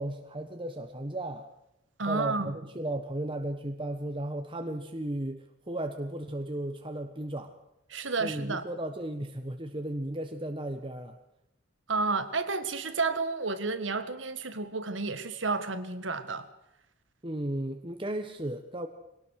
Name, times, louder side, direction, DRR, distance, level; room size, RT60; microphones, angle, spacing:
voice 1, 0.0-1.5 2.0-7.5 8.2-11.2 17.2-18.9, right 1 dB, 25° right, 1.3 m, -35 dB
voice 2, 2.0-2.5 7.9-8.6 11.9-16.5, right 4 dB, 90° right, 1.8 m, -31 dB
22.5 x 18.0 x 6.5 m
head